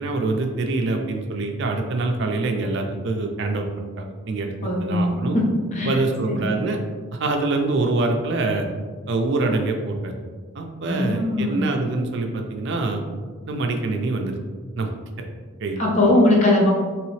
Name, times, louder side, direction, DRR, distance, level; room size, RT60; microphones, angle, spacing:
voice 1, 0.0-5.4 5.8-6.8 7.1-8.7 9.1-10.1 10.5-13.0 13.5-14.4 14.8-14.9 15.6-15.8, right 3 dB, 55° right, 3 dB, 0.4 m, -25 dB
voice 2, 4.6-6.6 10.9-11.6 15.8-16.7, left 1 dB, 35° left, -2 dB, 0.7 m, -21 dB
3.8 x 3.1 x 3.1 m, 1.5 s
head